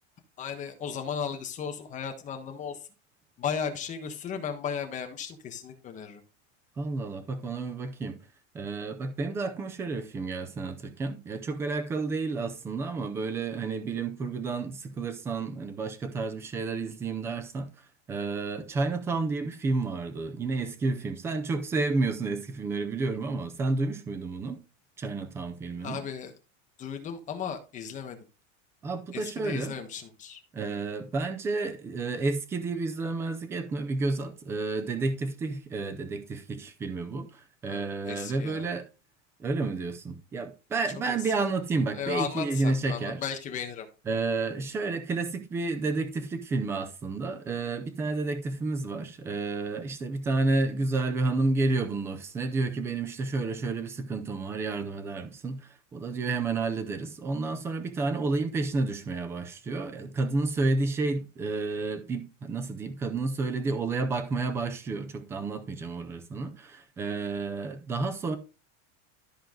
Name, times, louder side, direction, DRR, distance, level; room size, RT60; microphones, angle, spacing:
voice 1, 0.4-2.8 3.4-6.2 25.8-26.3 26.8-28.2 29.1-30.4 37.7-38.8 40.9-41.3 41.9-43.9, left 7 dB, 20° left, 1.3 m, -35 dB
voice 2, 6.8-8.2 8.5-17.7 18.1-24.6 25.0-26.0 28.8-29.8 30.5-38.9 39.4-43.2 44.1-68.4, right 3 dB, 5° right, 0.4 m, -30 dB
13.0 x 4.5 x 3.8 m
supercardioid pair, 170°, 38 cm